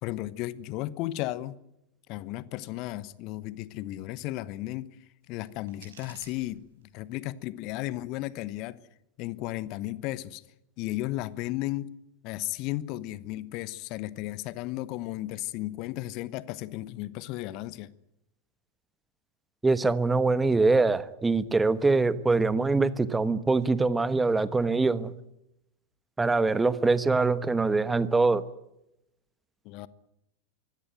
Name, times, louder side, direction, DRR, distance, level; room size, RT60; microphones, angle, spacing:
voice 1, 0.0-1.6 2.1-4.9 5.3-8.8 9.2-10.4 10.8-11.9 12.2-17.9 29.6-29.9, left 16 dB, 40° left, 1.1 m, -34 dB
sound 1, 5.2-7.2, right 7 dB, 65° right, 6.3 m, -55 dB
voice 2, 19.6-25.1 26.2-28.4, right 3 dB, 10° right, 1.2 m, -24 dB
24.0 x 17.0 x 9.2 m
figure-of-eight pair, 90°, 0 cm